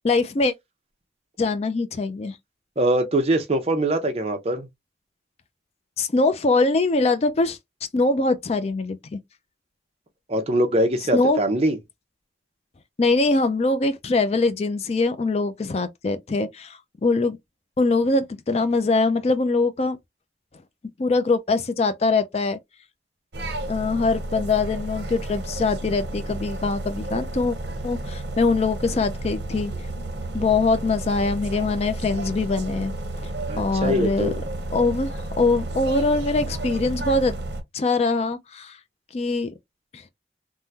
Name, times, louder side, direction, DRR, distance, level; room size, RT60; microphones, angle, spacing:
voice 1, 0.0-0.5 1.4-2.4 6.0-7.6 7.9-9.2 11.1-11.4 13.0-17.4 17.8-20.0 21.0-22.6 23.7-27.6 27.8-29.7 30.3-32.9 33.6-34.3 34.7-37.4 37.7-38.8 39.1-39.5 39.9-40.0, left 3 dB, 35° left, 0.4 m, -23 dB
voice 2, 2.8-4.7 10.3-11.8 33.5-34.4, right 1 dB, 35° right, 0.7 m, -22 dB
sound 1, 23.3-37.6, right 2 dB, 75° right, 0.8 m, -32 dB
3.5 x 2.2 x 2.7 m
head